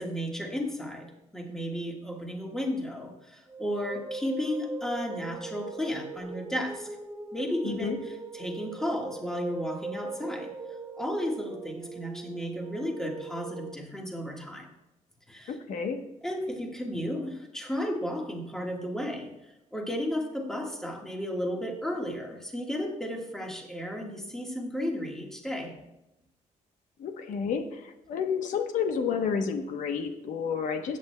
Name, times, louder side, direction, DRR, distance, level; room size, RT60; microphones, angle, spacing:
voice 1, 0.0-6.9 7.3-10.5 11.0-14.7 15.3-15.5 16.2-25.7, equal, 5° left, 0 dB, 1.5 m, -33 dB
sound 1, 3.5-13.7, right 3 dB, 15° right, 0.4 m, -40 dB
voice 2, 7.6-8.0 15.5-16.0 27.0-31.0, left 6 dB, 75° left, 6 dB, 0.9 m, -30 dB
17.5 x 8.6 x 2.2 m, 0.90 s
cardioid pair, 160°, 13 cm